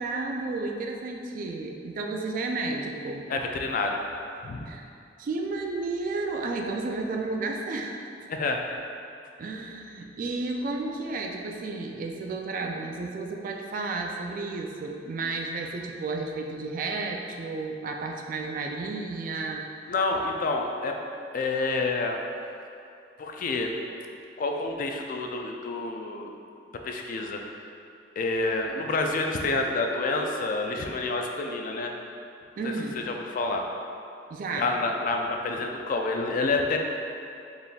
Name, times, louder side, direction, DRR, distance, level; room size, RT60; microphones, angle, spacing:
voice 1, 0.0-3.3 4.7-4.8 5.2-8.0 9.4-19.7 32.6-33.0 34.3-34.7, right 3 dB, 50° right, 2 dB, 0.3 m, -32 dB
voice 2, 3.3-4.0 4.4-4.7 8.3-8.6 19.9-21.0 21.3-22.2 23.2-23.7 24.4-26.4 26.7-27.6 28.2-31.9 32.6-33.7 34.6-36.8, left 3 dB, 50° left, 3 dB, 0.3 m, -28 dB
4.0 x 3.4 x 2.3 m, 2.6 s
head